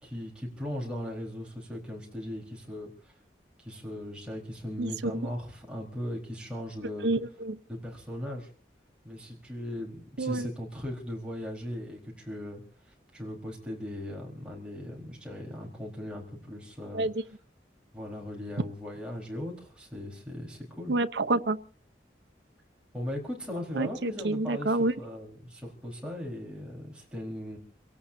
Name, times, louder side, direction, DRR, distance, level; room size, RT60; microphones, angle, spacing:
voice 1, 0.0-3.1 3.6-7.1 7.7-8.5 9.0-12.6 12.9-17.1 17.9-20.9 22.9-27.6, left 1 dB, 5° right, -2 dB, 4.2 m, -38 dB
voice 2, 4.8-5.3 7.0-7.6 10.2-10.5 16.9-17.1 20.9-21.6 23.7-24.9, right 2 dB, 85° right, 10 dB, 0.9 m, -28 dB
29.5 x 17.5 x 2.7 m, 0.40 s
head